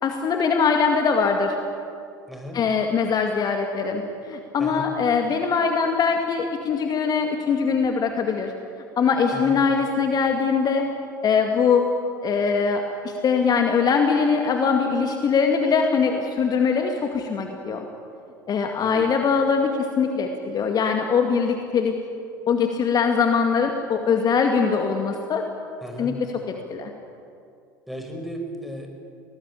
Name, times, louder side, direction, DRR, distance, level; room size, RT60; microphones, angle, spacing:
voice 1, 0.0-1.6 2.5-8.5 9.0-10.9 11.2-11.9 12.2-17.8 18.5-21.9 22.5-25.4 26.0-26.1 26.7-26.9, left 5 dB, 35° left, 4 dB, 2.2 m, -22 dB
voice 2, 2.3-2.6 4.6-4.9 9.3-9.6 18.8-19.0 25.8-26.2 27.9-28.9, equal, ahead, 3 dB, 5.7 m, -35 dB
23.5 x 19.0 x 8.5 m, 2.4 s
hypercardioid pair, 75°, 11 cm